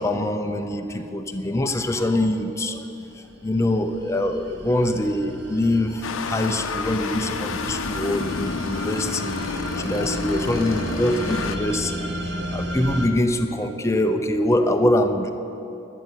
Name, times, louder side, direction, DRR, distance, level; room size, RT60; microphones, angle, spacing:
voice 1, 0.0-2.8 3.4-9.3 9.8-12.1 12.5-15.3, left 1 dB, 15° left, 6 dB, 0.6 m, -23 dB
sound 1, 3.0-13.1, equal, 60° right, 1.1 m, -33 dB
sound 2, 6.0-11.6, left 5 dB, 80° left, 0.6 m, -30 dB
12.5 x 6.7 x 9.2 m, 2.9 s
head